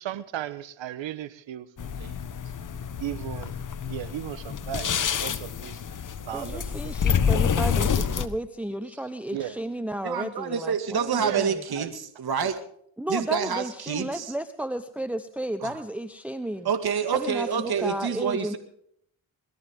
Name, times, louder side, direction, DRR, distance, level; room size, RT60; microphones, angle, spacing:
voice 1, 0.0-2.2 3.0-4.9 5.2-5.8 6.3-7.2 9.3-9.6 11.2-11.9 17.7-18.0, right 12 dB, 70° right, 16 dB, 1.2 m, -36 dB
sound 1, 1.8-8.3, left 7 dB, 40° left, 1.3 m, -27 dB
voice 2, 6.3-11.6 13.0-16.7 17.1-18.6, right 1 dB, 5° right, 9 dB, 1.0 m, -33 dB
voice 3, 10.0-12.6 13.1-14.3 15.6-15.7 16.6-18.6, right 6 dB, 50° right, 8 dB, 2.2 m, -27 dB
21.5 x 14.0 x 3.7 m, 0.66 s
cardioid pair, 75°, 47 cm